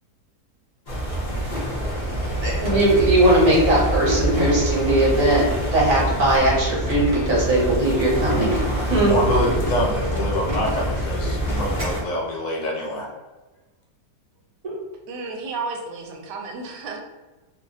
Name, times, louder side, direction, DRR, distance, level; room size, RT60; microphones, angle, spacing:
sound 1, 0.9-12.0, equal, 55° left, 0.5 m, -26 dB
sound 2, 1.5-12.0, equal, 40° right, 0.5 m, -36 dB
voice 1, 2.4-8.6 8.9-9.2 14.6-14.7, right 1 dB, 55° right, -5 dB, 1.3 m, -19 dB
voice 2, 9.1-13.1, left 1 dB, 70° left, -1 dB, 1.1 m, -25 dB
voice 3, 15.1-17.0, right 4 dB, 80° right, 2 dB, 1.2 m, -32 dB
3.0 x 2.3 x 2.6 m, 1.2 s
omnidirectional pair, 1.8 m